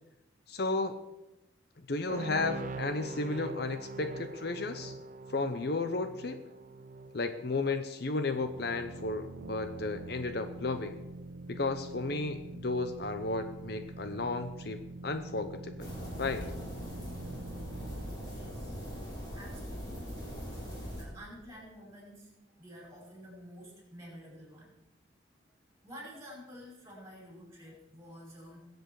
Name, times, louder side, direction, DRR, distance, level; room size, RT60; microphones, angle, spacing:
voice 1, 0.5-1.0 1.9-4.9 5.3-6.4 7.1-11.0 11.5-15.9 16.2-16.5, left 3 dB, 55° left, 9 dB, 0.8 m, -33 dB
sound 1, 2.1-9.7, right 3 dB, 40° right, 0.7 m, -44 dB
sound 2, 8.2-19.7, right 2 dB, 90° right, 0.6 m, -46 dB
sound 3, 15.8-21.0, equal, 20° left, 4.1 m, -41 dB
voice 2, 18.3-18.7 19.3-20.1 21.0-22.3 22.5-24.8 25.8-28.7, equal, 15° right, -4 dB, 5.5 m, -50 dB
21.5 x 8.1 x 4.8 m, 0.98 s
head